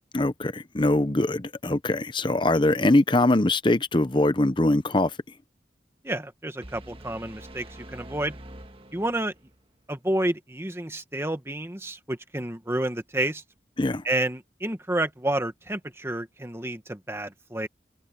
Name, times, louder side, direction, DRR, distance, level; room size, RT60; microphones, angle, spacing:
voice 1, 0.1-5.1 13.8-14.0, left 2 dB, 30° left, 0.8 m, -22 dB
voice 2, 6.0-7.7 7.9-8.3 8.9-9.3 9.9-13.4 14.0-17.7, right 1 dB, 15° right, 1.4 m, -29 dB
sound 1, 6.6-9.6, right 1 dB, 30° right, 1.6 m, -45 dB
head